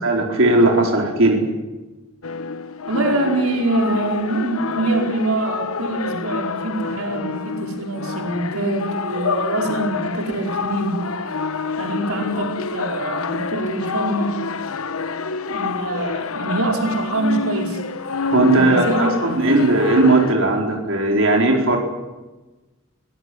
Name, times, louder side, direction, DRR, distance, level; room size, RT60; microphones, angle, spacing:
voice 1, 0.0-1.4 18.3-21.8, right 2 dB, 65° right, 1 dB, 4.7 m, -17 dB
sound 1, 2.2-20.3, left 4 dB, 80° left, 1.2 m, -27 dB
voice 2, 2.9-11.0 11.8-14.4 15.5-17.8 18.5-19.3, right 2 dB, 85° right, 2 dB, 4.9 m, -24 dB
23.5 x 18.5 x 9.6 m, 1.1 s
head